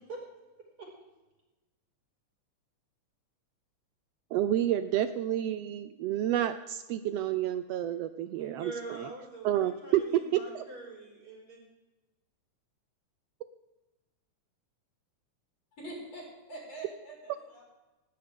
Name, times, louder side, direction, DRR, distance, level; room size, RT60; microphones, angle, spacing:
voice 1, 0.6-0.9 8.3-11.6, right 2 dB, 40° right, -3 dB, 6.7 m, -44 dB
voice 2, 4.3-8.7 9.4-10.0 10.3-10.6, right 12 dB, 85° right, 11 dB, 1.4 m, -29 dB
voice 3, 15.8-17.6, right 2 dB, 50° left, -3 dB, 6.7 m, -44 dB
20.0 x 17.0 x 3.8 m, 1.1 s
omnidirectional pair, 3.6 m